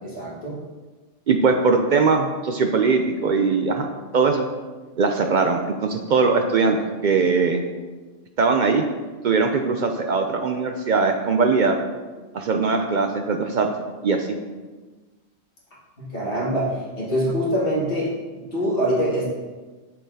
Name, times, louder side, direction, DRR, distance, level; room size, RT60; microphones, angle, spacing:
voice 1, 0.0-0.6 16.0-19.3, equal, 50° left, -8 dB, 2.4 m, -24 dB
voice 2, 1.3-4.5 5.0-6.8 7.0-7.6 8.4-8.8 9.2-11.8 12.3-13.7 14.0-14.4, right 4 dB, 60° right, 4 dB, 0.5 m, -20 dB
7.0 x 6.6 x 2.7 m, 1.3 s
omnidirectional pair, 1.2 m